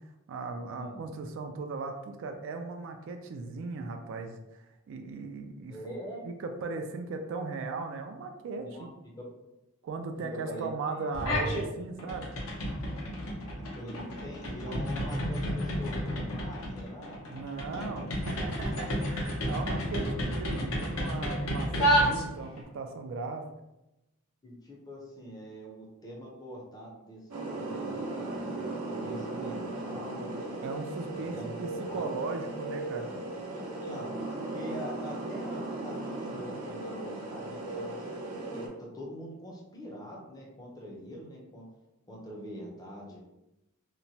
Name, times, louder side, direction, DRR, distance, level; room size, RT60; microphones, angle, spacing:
voice 1, 0.0-5.8 6.2-8.9 9.8-12.3 17.3-23.4 30.6-33.1, right 4 dB, 60° right, 5 dB, 0.3 m, -37 dB
voice 2, 0.7-1.0 5.7-6.2 8.6-8.9 9.2-9.3 10.2-10.7 13.8-17.2 17.7-18.5 21.6-21.9 24.4-27.3 27.5-30.5 31.1-32.2 33.5-34.1 34.5-41.7 42.1-43.2, equal, 20° left, -2 dB, 0.5 m, -44 dB
sound 1, 11.1-11.7 12.0-22.6, equal, 75° left, 0.7 m, -31 dB
sound 2, 27.3-38.7, right 2 dB, 90° right, 0.7 m, -37 dB
2.9 x 2.1 x 2.7 m, 0.94 s
head